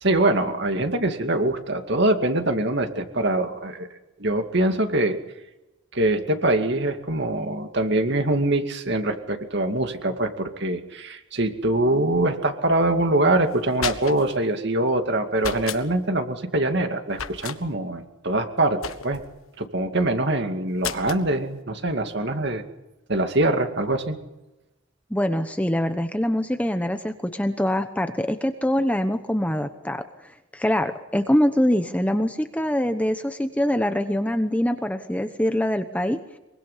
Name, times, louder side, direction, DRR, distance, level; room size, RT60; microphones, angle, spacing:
voice 1, 0.0-3.9 4.2-5.2 5.9-19.2 19.6-22.6 23.1-24.2, right 1 dB, 55° right, 6 dB, 2.4 m, -23 dB
sound 1, 13.5-14.4 15.4-15.8 17.1-17.6 18.8-19.3 20.8-21.3, left 7 dB, 80° left, 1.4 m, -32 dB
voice 2, 25.1-36.2, left 1 dB, 5° left, 8 dB, 1.0 m, -24 dB
24.0 x 23.5 x 5.7 m, 0.99 s
head